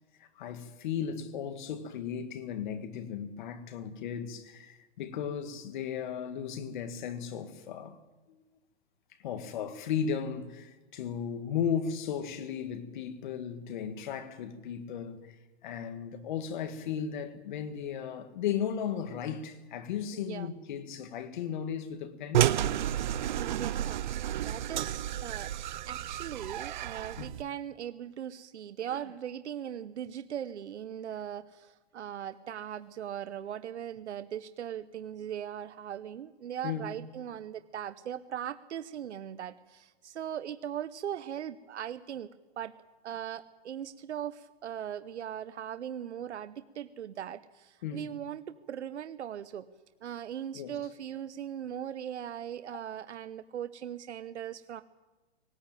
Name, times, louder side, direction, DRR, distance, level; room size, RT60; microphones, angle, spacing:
voice 1, 0.2-8.0 9.2-15.4 15.6-22.5 27.2-27.4 36.6-36.9 47.8-48.1 50.5-50.8 52.7-52.8, left 8 dB, 45° left, 2.1 m, -35 dB
voice 2, 20.1-20.5 23.3-25.5 25.9-42.3 42.6-42.7 43.0-49.7 50.0-54.8, right 9 dB, 90° right, 1.0 m, -39 dB
sound 1, 22.3-27.4, right 12 dB, 45° right, 0.6 m, -31 dB
19.5 x 18.5 x 9.1 m
hypercardioid pair, 165°, 33 cm